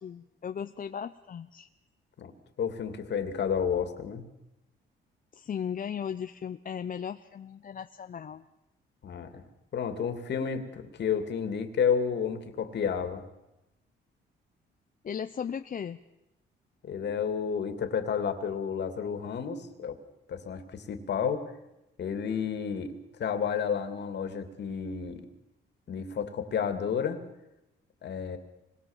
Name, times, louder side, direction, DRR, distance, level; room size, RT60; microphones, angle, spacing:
voice 1, 0.0-1.7 5.3-8.4 15.0-16.0, left 8 dB, 45° left, 9 dB, 0.8 m, -36 dB
voice 2, 2.6-4.3 9.0-9.4 9.7-13.2 16.8-20.0 20.3-21.4 22.0-22.9 23.2-25.3 25.9-27.2 28.0-28.4, left 7 dB, 60° left, 7 dB, 2.8 m, -31 dB
26.0 x 22.0 x 7.4 m, 0.94 s
cardioid pair, 90°, 20 cm